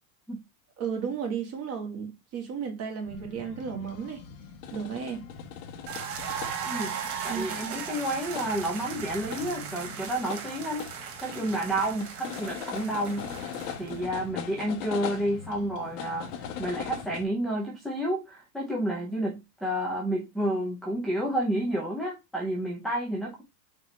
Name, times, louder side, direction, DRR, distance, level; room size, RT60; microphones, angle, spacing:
voice 1, 0.8-4.2 4.7-5.2 7.3-7.5, right 7 dB, 30° right, 2.0 m, -34 dB
sound 1, 3.0-17.2, left 7 dB, 65° left, 1.3 m, -41 dB
sound 2, 5.9-14.0, right 7 dB, 75° right, 1.8 m, -37 dB
voice 2, 7.2-23.4, right 1 dB, ahead, 0.4 m, -30 dB
4.4 x 3.8 x 3.1 m
supercardioid pair, 145°, 50 cm